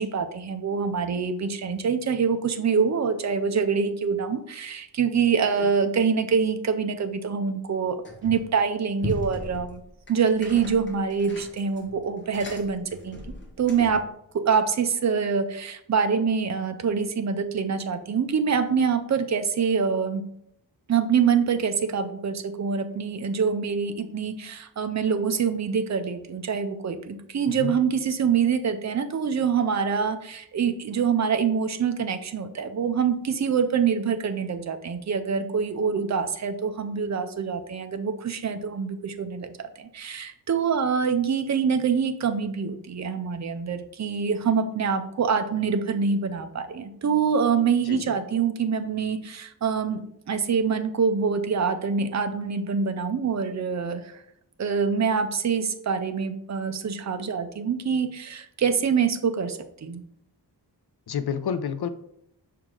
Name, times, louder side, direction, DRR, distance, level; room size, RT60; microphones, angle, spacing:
voice 1, 0.0-9.8 10.1-14.1 14.3-20.2 20.9-54.2 54.6-60.0, right 6 dB, 40° right, 8 dB, 0.6 m, -25 dB
sound 1, 8.0-8.6 9.0-14.1, left 1 dB, 25° left, 1.2 m, -38 dB
voice 2, 61.1-61.9, left 7 dB, 65° left, 11 dB, 0.6 m, -30 dB
6.3 x 4.6 x 3.8 m, 0.75 s
wide cardioid pair, 140°, 42 cm